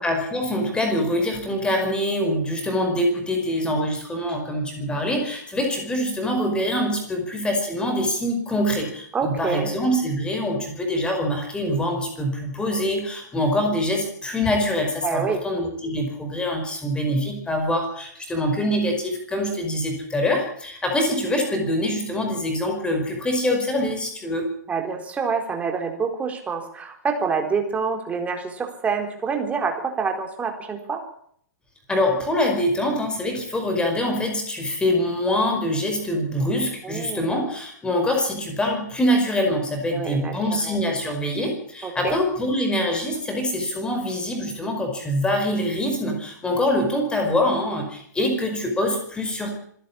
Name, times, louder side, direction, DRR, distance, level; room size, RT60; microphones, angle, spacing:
voice 1, 0.0-24.5 31.9-49.5, left 1 dB, 10° left, 3 dB, 5.1 m, -24 dB
voice 2, 9.1-9.7 15.0-15.4 24.7-31.0 36.8-37.3 39.9-40.3 40.6-40.8 41.8-42.2, right 5 dB, 15° right, 4 dB, 4.1 m, -27 dB
26.0 x 11.5 x 8.8 m, 0.65 s
figure-of-eight pair, 110°, 10 cm